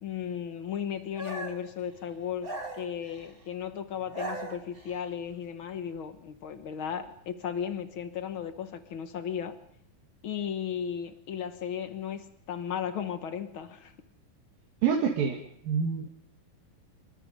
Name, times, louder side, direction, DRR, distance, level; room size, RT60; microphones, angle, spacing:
voice 1, 0.0-9.6 10.2-13.9, left 8 dB, 75° left, 1.1 m, -35 dB
sound 1, 1.2-1.7 2.4-3.4 3.9-5.0, right 1 dB, 20° right, 2.0 m, -38 dB
voice 2, 14.8-15.4 15.6-16.1, right 6 dB, 65° right, 3.7 m, -26 dB
28.5 x 23.5 x 5.3 m
omnidirectional pair, 4.4 m